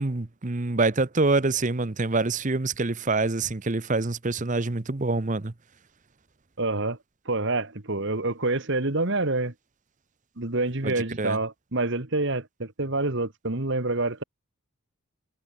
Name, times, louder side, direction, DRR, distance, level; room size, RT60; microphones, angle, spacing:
voice 1, 0.0-5.5 10.8-11.4, right 3 dB, 35° right, 0.8 m, -26 dB
voice 2, 6.6-7.0 7.3-9.5 10.4-14.2, right 2 dB, 55° right, 1.8 m, -27 dB
head